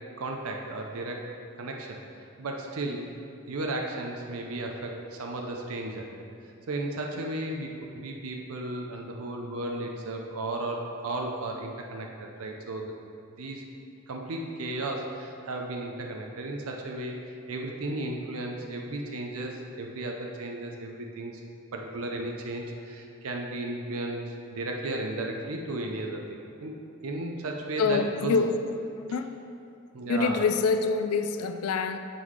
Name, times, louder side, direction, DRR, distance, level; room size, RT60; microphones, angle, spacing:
voice 1, 0.2-1.3 1.6-3.1 3.5-6.1 6.7-12.9 13.4-13.6 14.1-17.2 17.5-21.4 21.7-28.3 29.9-30.4, right 2 dB, 75° right, 1 dB, 0.6 m, -34 dB
voice 2, 27.8-28.5 29.0-29.3 30.1-32.0, left 5 dB, 75° left, 8 dB, 0.3 m, -26 dB
8.1 x 3.8 x 4.7 m, 2.5 s
head